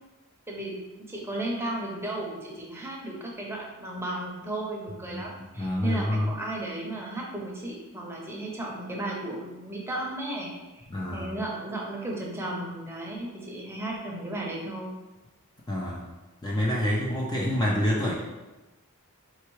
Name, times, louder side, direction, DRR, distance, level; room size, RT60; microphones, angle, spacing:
voice 1, 0.5-14.9, right 1 dB, 10° right, -2 dB, 0.7 m, -35 dB
voice 2, 5.6-6.3 10.9-11.4 15.7-16.1 16.4-18.1, left 1 dB, 20° left, -4 dB, 0.5 m, -27 dB
4.5 x 3.3 x 3.1 m, 1.1 s
head